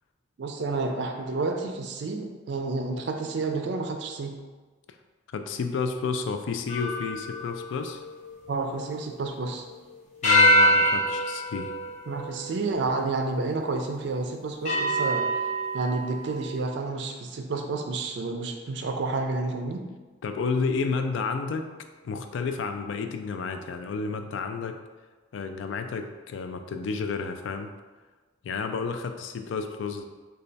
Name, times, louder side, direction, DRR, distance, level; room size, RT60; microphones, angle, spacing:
voice 1, 0.4-4.4 8.5-9.6 12.1-15.3 15.7-19.8, right 3 dB, 60° right, 4 dB, 0.4 m, -30 dB
voice 2, 5.3-8.0 10.2-11.7 20.2-21.7 22.0-24.8 25.3-27.7 28.4-30.0, left 4 dB, 70° left, 7 dB, 0.3 m, -31 dB
sound 1, 6.7-9.7 10.2-13.0 13.7-13.8 14.7-16.2, equal, 40° left, 0.6 m, -25 dB
3.2 x 2.3 x 3.9 m, 1.3 s
head